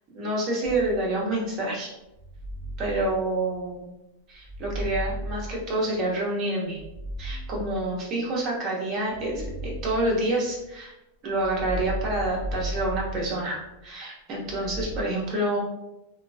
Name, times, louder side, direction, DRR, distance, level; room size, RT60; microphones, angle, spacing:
voice 1, 0.1-1.9 2.8-3.9 4.3-6.8 7.2-10.9 11.2-15.6, right 1 dB, 30° right, -4 dB, 0.9 m, -28 dB
sound 1, 0.6-1.3 2.1-3.8 4.4-6.2 6.7-8.3 9.1-10.7 11.3-13.8 14.4-15.0, right 1 dB, 25° left, 1.0 m, -36 dB
2.9 x 2.3 x 2.6 m, 0.92 s
supercardioid pair, 150°, 0 cm